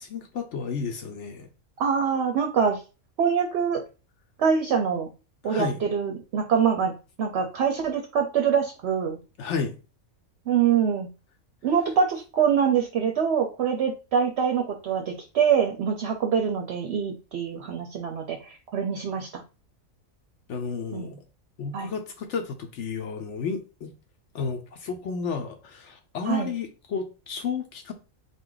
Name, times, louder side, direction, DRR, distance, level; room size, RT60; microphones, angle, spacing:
voice 1, 0.0-1.5 5.4-5.8 9.4-9.7 20.5-21.2 21.6-23.9 24.3-27.9, left 5 dB, 65° left, 0.9 m, -32 dB
voice 2, 1.8-2.8 3.2-3.8 4.4-5.1 5.4-6.9 7.2-9.2 10.5-11.1 11.6-19.4 20.9-21.2 21.7-21.9 26.3-26.5, right 7 dB, 60° right, 0.7 m, -24 dB
3.8 x 2.5 x 3.8 m
omnidirectional pair, 1.5 m